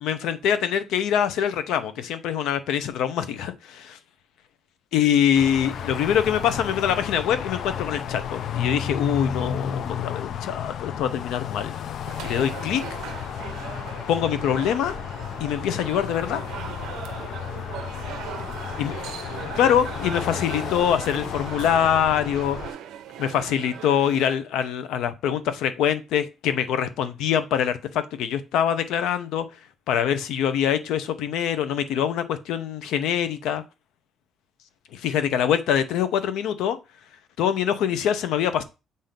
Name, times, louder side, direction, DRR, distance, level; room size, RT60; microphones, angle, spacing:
voice 1, 0.0-4.0 4.9-11.7 12.2-12.9 14.1-15.0 15.4-16.4 18.8-18.9 19.5-22.6 23.2-29.4 29.9-33.6 34.9-36.8 37.4-38.6, left 9 dB, 80° left, 11 dB, 0.8 m, -24 dB
sound 1, 5.3-22.7, left 8 dB, 55° left, 0.4 m, -33 dB
sound 2, 12.0-24.4, right 9 dB, 70° right, 0.7 m, -39 dB
7.5 x 2.7 x 5.1 m, 0.28 s
cardioid pair, 165°, 0 cm